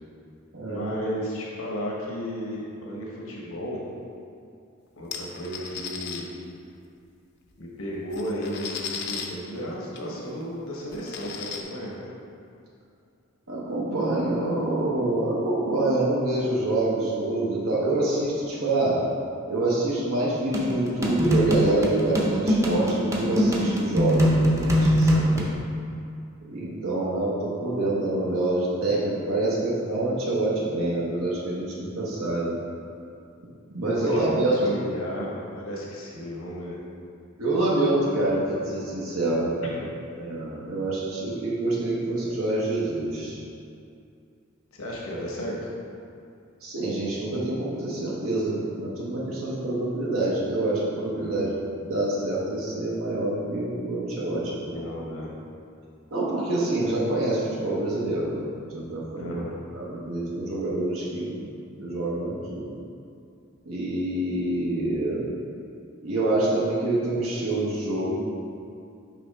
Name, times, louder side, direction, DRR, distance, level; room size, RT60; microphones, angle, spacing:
voice 1, 0.7-3.8 5.0-6.6 7.6-12.1 25.0-25.5 34.0-36.8 39.6-39.7 44.7-45.7 51.1-51.5 54.6-55.3 59.2-59.6, equal, 80° left, -3 dB, 1.0 m, -34 dB
sound 1, 5.1-6.2 7.5-7.6 7.9-9.3 10.0-10.1 10.4-10.5 10.9-11.6, left 7 dB, 55° left, 0.6 m, -35 dB
voice 2, 13.5-19.0 19.5-25.3 26.5-32.5 33.7-34.8 37.4-39.6 40.1-43.4 46.6-54.8 56.1-58.4 58.7-59.4 59.7-61.3 61.8-62.7 63.6-65.3 66.0-68.1, right 2 dB, 80° right, -6 dB, 1.1 m, -26 dB
sound 2, 20.5-25.5, equal, 15° right, 0.6 m, -22 dB
6.1 x 5.0 x 3.5 m, 2.5 s
head